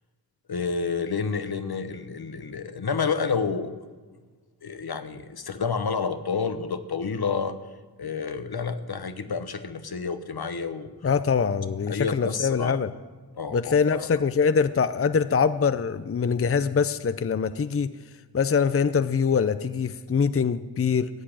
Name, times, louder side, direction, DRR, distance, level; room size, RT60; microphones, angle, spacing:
voice 1, 0.5-3.7 4.6-7.6 8.0-10.9 11.9-12.8 13.4-14.1, left 5 dB, 75° left, 10 dB, 1.1 m, -29 dB
voice 2, 11.0-12.9 13.5-17.9 18.3-21.1, left 6 dB, 35° left, 13 dB, 0.5 m, -23 dB
15.0 x 8.4 x 8.9 m, 1.4 s
wide cardioid pair, 75°, 38 cm